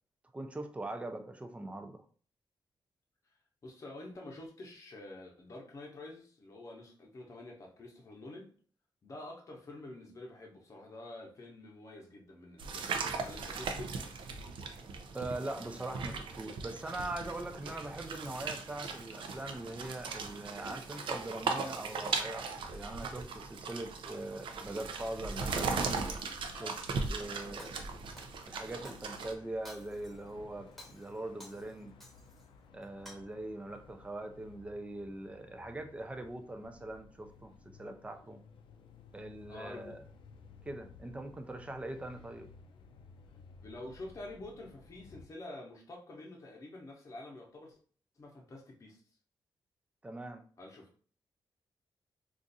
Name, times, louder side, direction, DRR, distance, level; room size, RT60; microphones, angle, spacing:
voice 1, 0.3-2.0 15.1-25.9 26.5-26.8 27.1-27.8 28.5-31.9 32.7-37.5 37.8-38.4 39.1-40.0 40.7-42.5 50.0-50.4, right 2 dB, 15° right, 0.4 m, -42 dB
voice 2, 3.6-8.5 9.0-14.0 26.5-26.8 39.5-39.9 43.6-47.8 48.2-49.0 50.6-50.9, left 2 dB, 35° left, 0.8 m, -48 dB
sound 1, 12.6-29.3, right 4 dB, 75° right, 0.5 m, -38 dB
sound 2, 25.3-45.3, left 4 dB, 75° left, 0.4 m, -57 dB
Shatter, 26.5-27.2 27.6-29.2 29.6-30.3 30.7-32.5 32.8-33.1, left 1 dB, ahead, 0.9 m, -55 dB
2.5 x 2.5 x 4.0 m
wide cardioid pair, 135°, 9 cm